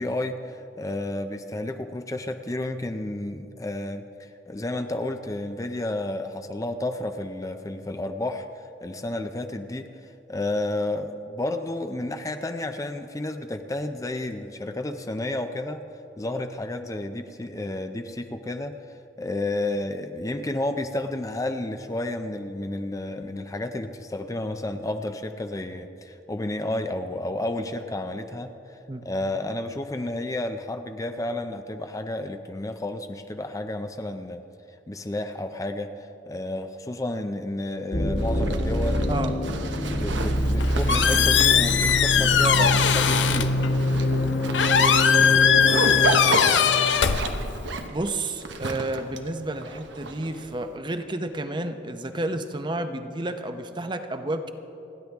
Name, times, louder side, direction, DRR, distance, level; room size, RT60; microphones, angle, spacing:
voice 1, 0.0-8.5 8.8-9.9 10.3-15.8 16.2-18.8 19.2-34.4 34.9-39.2 39.9-43.6, left 1 dB, 20° left, 7 dB, 0.5 m, -31 dB
sound 1, 37.9-46.1, left 1 dB, 40° left, 1.4 m, -25 dB
Zipper (clothing), 38.2-50.6, right 3 dB, 85° right, 1.0 m, -33 dB
Squeak, 40.4-47.9, left 7 dB, 85° left, 0.7 m, -21 dB
voice 2, 47.9-54.5, right 2 dB, 25° right, 8 dB, 0.7 m, -31 dB
29.5 x 10.5 x 3.5 m, 2.9 s
head